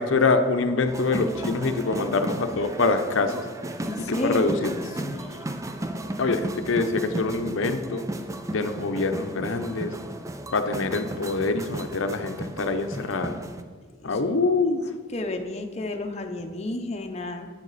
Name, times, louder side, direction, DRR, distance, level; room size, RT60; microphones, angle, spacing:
voice 1, 0.0-3.4 4.1-5.5 6.2-8.0 8.5-9.9 10.5-13.4 14.0-14.8, left 3 dB, 90° left, 7 dB, 0.7 m, -25 dB
sound 1, 0.9-13.6, right 1 dB, 15° right, 0.4 m, -34 dB
voice 2, 3.8-5.0 14.0-14.2 15.1-17.5, left 2 dB, 35° left, 4 dB, 0.7 m, -31 dB
9.2 x 8.3 x 4.1 m, 1.5 s
head